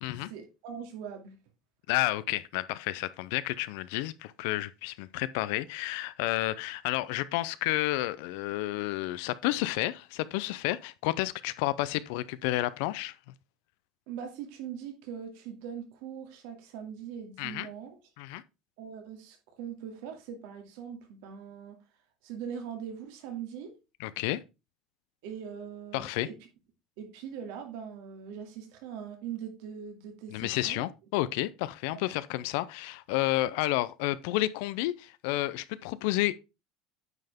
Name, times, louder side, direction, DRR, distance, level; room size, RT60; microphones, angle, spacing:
voice 1, 0.3-1.3 14.1-18.0 18.8-21.8 22.2-23.7 25.2-26.3 27.0-30.8, right 8 dB, 75° right, 2.3 m, -41 dB
voice 2, 1.9-13.2 17.4-17.7 18.2-18.4 24.0-24.4 25.9-26.3 30.3-36.3, left 17 dB, 75° left, 0.4 m, -31 dB
9.1 x 5.6 x 3.5 m
cardioid pair, 175°, 0 cm